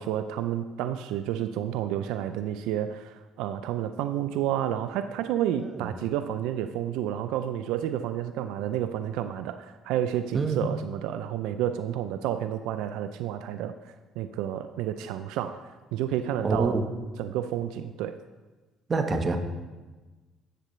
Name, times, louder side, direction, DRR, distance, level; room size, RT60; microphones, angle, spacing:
voice 1, 0.0-13.7 14.2-16.8 17.2-18.2, right 11 dB, 85° right, 10 dB, 0.4 m, -30 dB
voice 2, 16.4-16.9 18.9-19.4, right 4 dB, 30° right, 6 dB, 1.1 m, -26 dB
13.5 x 8.4 x 3.1 m, 1.3 s
cardioid pair, 115°, 0 cm